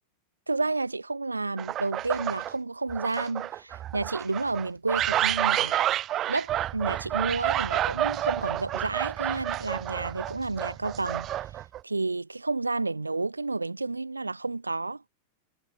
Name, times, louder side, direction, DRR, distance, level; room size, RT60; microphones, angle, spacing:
voice 1, 0.5-5.8 6.3-11.3 11.8-15.0, right 3 dB, 80° right, 1.2 m, -31 dB
sound 1, 1.6-2.5 2.9-11.8, right 12 dB, 30° right, 2.0 m, -29 dB
figure-of-eight pair, 90°, 0 cm